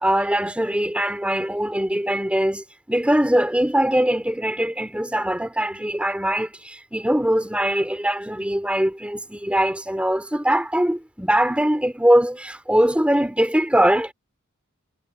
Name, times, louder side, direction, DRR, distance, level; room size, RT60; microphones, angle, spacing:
voice 1, 0.0-14.1, right 1 dB, 5° right, 3.5 m, -21 dB
head